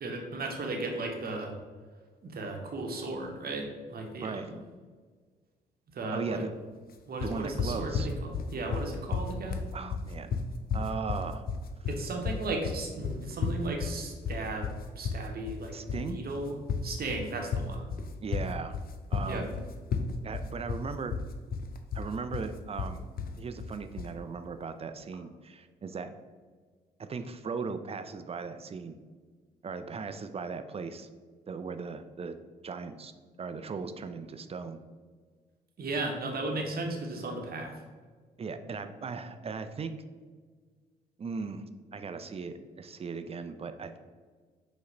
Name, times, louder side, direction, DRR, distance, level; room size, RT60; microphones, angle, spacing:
voice 1, 0.0-1.5 2.2-4.6 5.9-6.4 7.0-9.7 11.9-14.7 15.0-16.6 16.8-17.9 19.3-19.5 35.8-37.7, right 2 dB, 45° right, 2 dB, 0.8 m, -35 dB
voice 2, 4.2-4.5 6.1-6.5 7.2-8.1 9.7-10.3 10.7-11.5 15.7-16.2 18.2-18.8 19.1-19.5 20.2-21.1 21.9-23.1 23.4-26.1 27.0-29.0 29.6-31.1 31.5-32.4 32.6-33.1 33.4-34.8 38.4-39.9 41.2-41.6 41.9-44.0, right 5 dB, 30° right, 9 dB, 0.4 m, -37 dB
sound 1, 7.2-24.2, left 5 dB, 45° left, 0.4 m, -33 dB
5.1 x 2.1 x 3.7 m, 1.5 s
hypercardioid pair, 45°, 21 cm